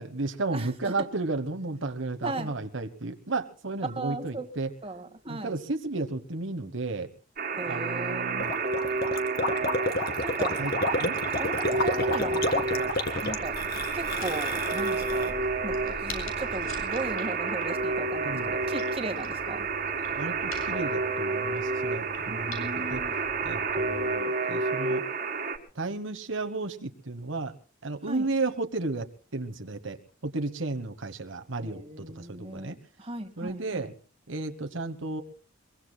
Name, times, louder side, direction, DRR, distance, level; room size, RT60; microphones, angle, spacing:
voice 1, 0.0-4.7 5.3-7.1 7.7-8.5 10.6-10.7 11.0-11.2 18.2-18.5 20.1-23.0 23.4-25.0 25.7-27.5 27.8-29.1 29.3-30.0 30.2-32.8 33.4-33.9 34.3-35.2, right 3 dB, 65° right, 8 dB, 1.2 m, -33 dB
voice 2, 0.5-1.1 2.2-2.5 3.9-4.5 4.8-5.5 7.5-8.5 10.2-10.6 11.4-12.9 13.2-13.6 13.9-15.3 15.6-19.7 22.3-23.1 28.1-28.3 31.6-33.9, right 2 dB, 25° right, 5 dB, 1.8 m, -37 dB
Alarm, 7.4-25.6, right 4 dB, 40° right, 2.0 m, -30 dB
Gurgling, 8.4-15.3, left 2 dB, 45° left, 2.1 m, -30 dB
sound 1, 12.0-24.1, left 1 dB, 75° left, 7.3 m, -44 dB
24.0 x 23.0 x 2.3 m, 0.39 s
head